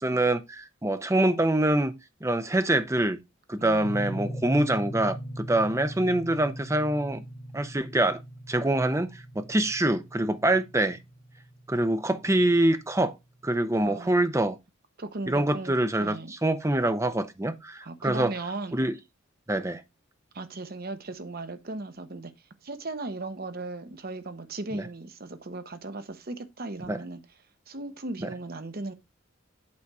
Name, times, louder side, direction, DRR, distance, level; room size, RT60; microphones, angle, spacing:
voice 1, 0.0-1.9 2.2-3.2 3.5-7.2 7.5-8.2 8.5-11.0 11.7-13.2 13.4-14.6 15.3-18.3 18.7-18.9 19.5-19.8 24.7-24.8 26.9-27.0 28.2-28.3, right 1 dB, 15° right, 0.6 m, -25 dB
sound 1, 3.8-12.5, equal, 90° left, 1.6 m, -40 dB
voice 2, 13.8-14.4 15.0-16.3 17.8-18.8 20.3-22.3 22.6-27.2 27.7-28.9, right 2 dB, 50° right, 0.9 m, -37 dB
8.5 x 4.0 x 4.7 m
head